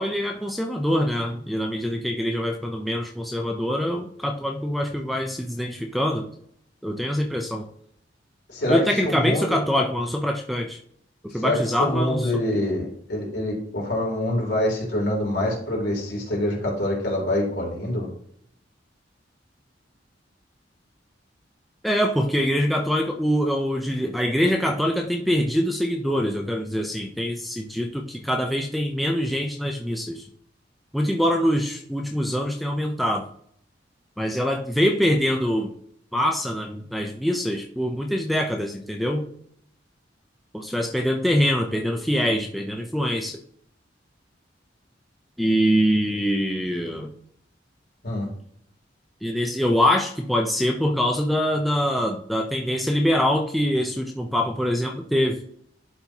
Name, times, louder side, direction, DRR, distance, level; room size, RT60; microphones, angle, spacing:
voice 1, 0.0-6.2 6.8-7.7 8.7-10.8 11.3-12.3 21.8-30.2 30.9-33.3 34.2-35.7 36.1-39.2 40.5-43.4 45.4-47.1 49.2-55.4, equal, ahead, 1 dB, 0.5 m, -24 dB
voice 2, 8.5-9.6 11.3-18.1 48.0-48.3, left 1 dB, 65° left, -3 dB, 3.3 m, -25 dB
11.5 x 4.3 x 2.9 m, 0.65 s
head